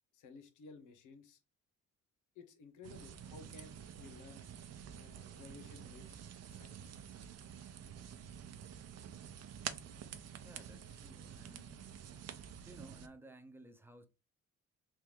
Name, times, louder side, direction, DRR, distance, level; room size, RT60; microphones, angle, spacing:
voice 1, 0.1-1.4 2.3-4.4 5.0-6.2 6.5-7.0, left 4 dB, 80° left, 1.1 m, -56 dB
sound 1, 2.8-13.1, right 8 dB, 55° right, 0.7 m, -49 dB
voice 2, 10.4-12.0 12.6-14.1, right 1 dB, 5° right, 0.8 m, -56 dB
3.5 x 3.4 x 3.0 m
cardioid pair, 90°, 30 cm